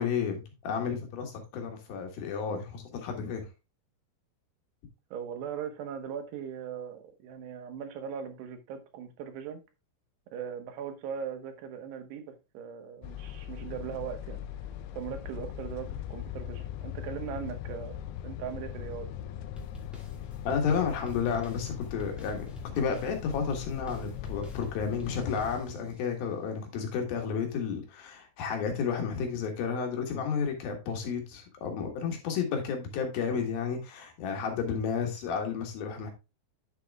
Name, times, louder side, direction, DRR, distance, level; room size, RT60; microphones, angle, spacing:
voice 1, 0.0-3.5 20.4-36.1, left 6 dB, 65° left, 3.3 m, -32 dB
voice 2, 5.1-9.6 10.3-14.4 15.0-19.1, right 8 dB, 85° right, 3.3 m, -39 dB
sound 1, 13.0-25.6, left 11 dB, 80° left, 2.6 m, -40 dB
sound 2, 19.6-26.0, right 2 dB, ahead, 1.2 m, -50 dB
9.4 x 7.7 x 2.3 m
omnidirectional pair, 4.7 m